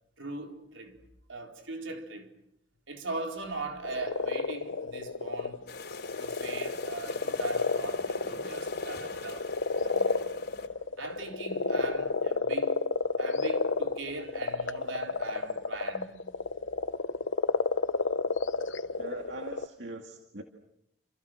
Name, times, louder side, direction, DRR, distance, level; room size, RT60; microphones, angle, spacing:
voice 1, 0.2-1.0 1.3-2.3 2.9-5.6 6.2-9.5 9.8-10.2 11.0-12.8 13.2-16.2, right 3 dB, 90° right, 4.1 m, -40 dB
sound 1, 3.8-19.7, left 4 dB, 80° left, 1.0 m, -31 dB
sound 2, 5.7-10.7, left 3 dB, 55° left, 3.4 m, -44 dB
voice 2, 19.0-20.4, right 2 dB, 70° right, 2.2 m, -41 dB
29.5 x 28.5 x 6.3 m
head